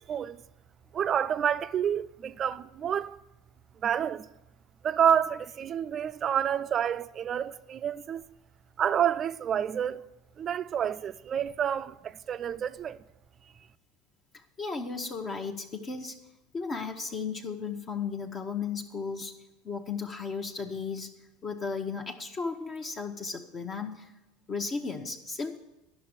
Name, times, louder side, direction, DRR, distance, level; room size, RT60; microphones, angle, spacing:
voice 1, 0.9-3.2 3.8-4.3 4.8-8.2 8.8-10.0 10.4-13.0, right 9 dB, 40° right, 0.4 m, -28 dB
voice 2, 14.3-16.2 16.5-19.3 19.6-21.1 21.4-24.1 24.5-25.6, left 5 dB, 35° left, 0.9 m, -35 dB
11.0 x 6.0 x 8.0 m
hypercardioid pair, 90°, 0 cm